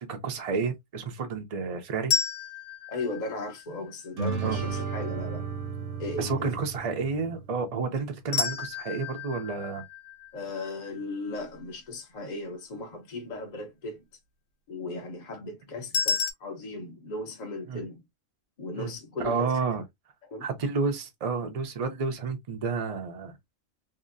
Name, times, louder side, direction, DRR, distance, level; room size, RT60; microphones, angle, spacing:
voice 1, 0.0-2.1 4.4-4.6 6.2-9.8 17.7-17.8 18.8-18.9 19.2-19.8 20.4-23.3, right 5 dB, 50° right, 0.4 m, -30 dB
sound 1, 2.1-4.2 8.3-11.4 15.9-16.3, left 6 dB, 80° left, 1.0 m, -32 dB
voice 2, 2.9-5.5 6.0-6.6 10.3-14.0 14.7-18.0 18.6-19.5 20.2-20.5, left 2 dB, 50° left, 0.5 m, -37 dB
sound 2, 4.2-7.8, right 5 dB, 70° right, 1.0 m, -34 dB
2.8 x 2.4 x 2.5 m
omnidirectional pair, 1.4 m